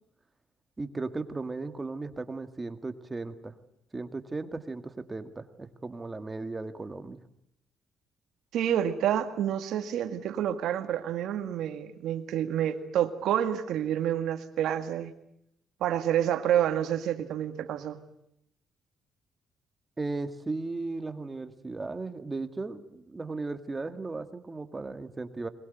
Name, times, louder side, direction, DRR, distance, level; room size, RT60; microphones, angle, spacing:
voice 1, 0.8-3.5 3.9-7.2 20.0-25.5, right 3 dB, 20° right, 9 dB, 1.9 m, -36 dB
voice 2, 8.5-15.1 15.8-18.0, right 10 dB, 80° right, 7 dB, 1.9 m, -28 dB
22.0 x 21.0 x 9.3 m, 0.75 s
cardioid pair, 90°, 0 cm